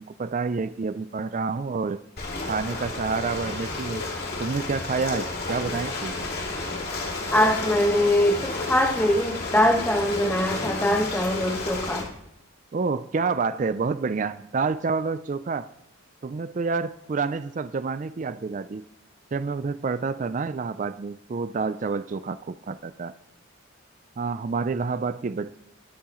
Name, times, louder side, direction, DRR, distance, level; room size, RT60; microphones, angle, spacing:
voice 1, 0.0-2.0 2.5-4.0 4.4-6.2 12.7-15.7 16.2-18.8 19.3-23.1 24.2-25.6, right 4 dB, 35° right, 13 dB, 0.3 m, -28 dB
Ocean, 2.2-12.0, left 3 dB, 50° left, 2.7 m, -31 dB
voice 2, 7.3-12.1, left 1 dB, 10° left, 2 dB, 1.4 m, -22 dB
22.0 x 8.4 x 3.1 m, 0.76 s
head